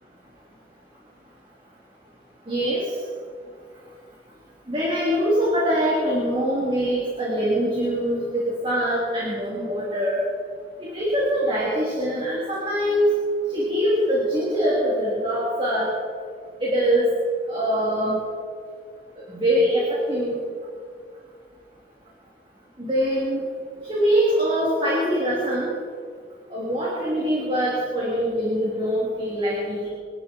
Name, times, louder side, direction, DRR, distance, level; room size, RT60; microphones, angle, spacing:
voice 1, 2.5-2.8 4.7-10.2 10.8-13.1 13.5-15.9 16.6-17.0 17.5-18.2 19.3-20.3 22.8-23.4 23.9-25.7 26.5-29.9, equal, 30° right, -6 dB, 3.3 m, -23 dB
26.0 x 11.0 x 4.6 m, 2.1 s
head